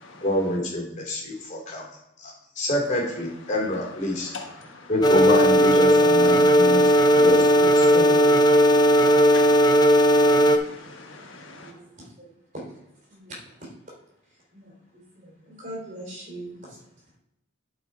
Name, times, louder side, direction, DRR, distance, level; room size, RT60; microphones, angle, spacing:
voice 1, 0.2-1.8 2.2-4.3 4.9-6.8 7.0-8.4, left 1 dB, 35° left, 3.0 m, -27 dB
voice 2, 4.1-4.9 6.4-7.2 7.7-7.9 8.5-11.7, left 3 dB, 65° left, 1.4 m, -42 dB
sound 1, 5.0-10.6, equal, 20° left, 0.6 m, -17 dB
voice 3, 11.6-12.7 13.0-13.9 14.2-16.8, right 1 dB, 40° right, 3.5 m, -42 dB
10.5 x 4.8 x 4.6 m
head